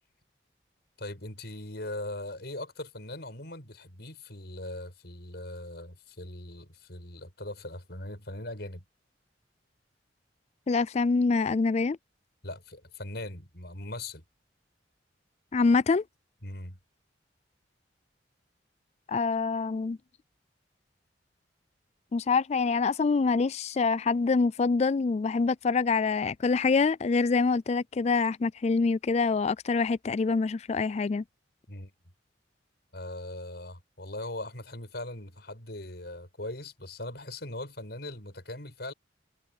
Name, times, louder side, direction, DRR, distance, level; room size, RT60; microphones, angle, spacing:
voice 1, 1.0-8.8 12.4-14.2 16.4-16.8 31.7-31.9 32.9-38.9, left 1 dB, 60° left, 7.5 m, -40 dB
voice 2, 10.7-12.0 15.5-16.0 19.1-20.0 22.1-31.2, left 4 dB, 35° left, 0.3 m, -25 dB
head